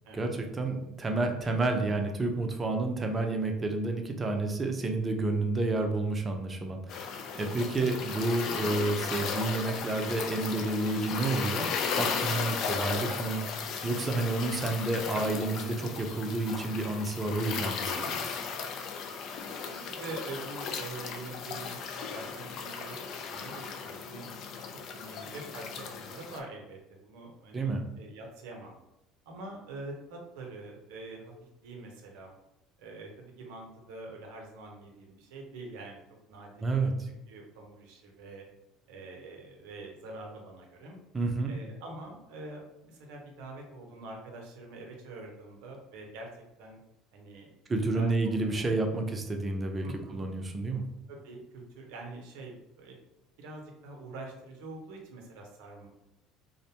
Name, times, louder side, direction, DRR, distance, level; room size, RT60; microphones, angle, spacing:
voice 1, 0.1-13.5 13.8-18.4 27.5-27.8 36.6-36.9 41.1-41.5 47.7-50.8, right 2 dB, 25° right, 4 dB, 0.5 m, -30 dB
voice 2, 4.3-4.7 7.3-7.6 15.1-15.3 19.4-24.4 24.9-28.8 29.3-31.3 31.6-32.4 32.8-36.0 36.3-38.5 38.9-41.0 41.5-46.8 47.1-47.5 47.9-48.1 48.5-48.6 49.8-50.3 51.1-53.0 53.4-55.9, right 2 dB, 70° right, 1 dB, 0.6 m, -45 dB
sound 1, 6.9-26.4, left 6 dB, 55° left, 0.3 m, -36 dB
2.5 x 2.1 x 2.8 m, 0.89 s
hypercardioid pair, 65°, 0 cm